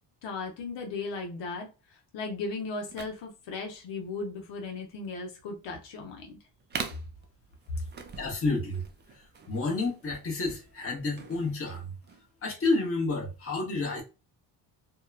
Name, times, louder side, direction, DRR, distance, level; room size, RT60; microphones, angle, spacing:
voice 1, 0.2-6.4, left 3 dB, 80° left, 0.8 m, -37 dB
sound 1, 2.8-12.3, right 5 dB, 25° right, 0.4 m, -44 dB
voice 2, 8.2-8.8 9.5-12.0 12.4-14.0, left 3 dB, 30° left, 0.9 m, -30 dB
2.8 x 2.2 x 2.3 m
cardioid pair, 115°, 43 cm